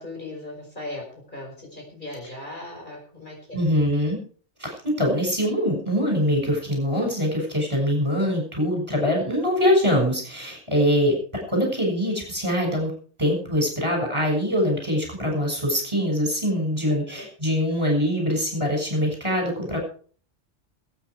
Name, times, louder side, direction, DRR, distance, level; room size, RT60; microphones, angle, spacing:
voice 1, 0.0-3.6 16.9-17.3, left 2 dB, 40° left, -1 dB, 5.5 m, -38 dB
voice 2, 3.5-4.2 4.6-11.2 11.5-12.9 13.2-19.8, equal, 25° right, 1 dB, 6.4 m, -23 dB
21.5 x 9.4 x 4.8 m, 0.43 s
omnidirectional pair, 1.2 m